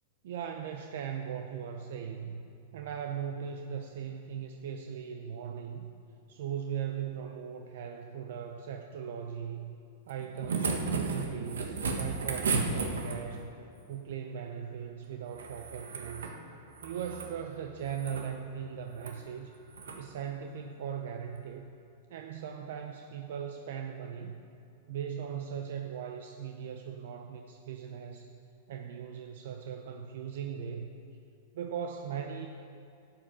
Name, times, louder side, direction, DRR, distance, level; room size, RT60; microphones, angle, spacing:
voice 1, 0.2-2.4 2.7-5.9 6.3-9.8 10.1-13.5 13.9-16.3 16.8-19.6 20.0-21.7 22.1-24.4 24.9-28.3 28.7-30.9 31.5-32.5, right 8 dB, 70° right, 4 dB, 0.7 m, -39 dB
sound 1, 10.1-13.4 15.3-16.4 16.7-17.3 17.8-18.3 18.9-19.2 19.7-20.0 21.4-21.5, right 4 dB, 90° right, 1.4 m, -34 dB
12.0 x 9.0 x 6.1 m, 2.5 s
hypercardioid pair, 125°, 0 cm